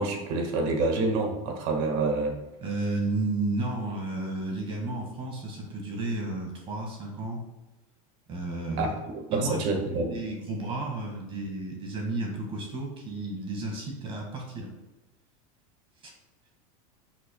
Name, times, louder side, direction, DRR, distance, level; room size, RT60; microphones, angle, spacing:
voice 1, 0.0-2.4 8.8-8.9 9.3-10.1, right 3 dB, 55° right, 3 dB, 1.6 m, -27 dB
voice 2, 2.6-7.4 8.3-8.9 9.3-9.6 9.9-14.7 16.0-16.1, right 2 dB, 30° right, 0 dB, 1.8 m, -32 dB
12.5 x 6.1 x 2.3 m, 1.0 s
supercardioid pair, 150°, 19 cm